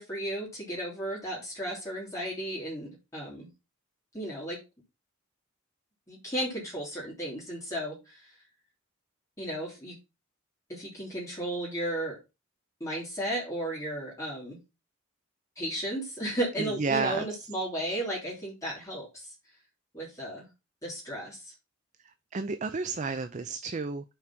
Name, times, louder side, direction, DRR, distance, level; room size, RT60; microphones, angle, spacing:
voice 1, 0.0-3.5 4.1-4.6 6.1-8.3 9.4-9.9 10.7-12.2 12.8-14.6 15.6-19.3 19.9-20.5 20.8-21.5, right 1 dB, 15° left, -6 dB, 3.2 m, -34 dB
voice 2, 16.6-17.3 22.3-24.1, right 4 dB, 35° right, 10 dB, 0.5 m, -31 dB
6.0 x 4.9 x 6.0 m, 0.26 s
head